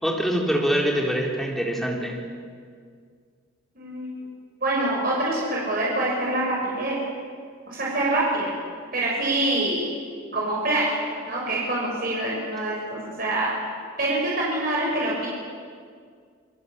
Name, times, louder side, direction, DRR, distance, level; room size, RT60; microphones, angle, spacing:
voice 1, 0.0-2.2, equal, ahead, -1 dB, 3.7 m, -24 dB
voice 2, 3.7-4.2 4.6-7.0 7.7-8.6 8.9-9.9 10.3-13.5 14.0-15.3, right 2 dB, 45° right, -4 dB, 6.3 m, -25 dB
27.0 x 22.5 x 8.4 m, 2.1 s
head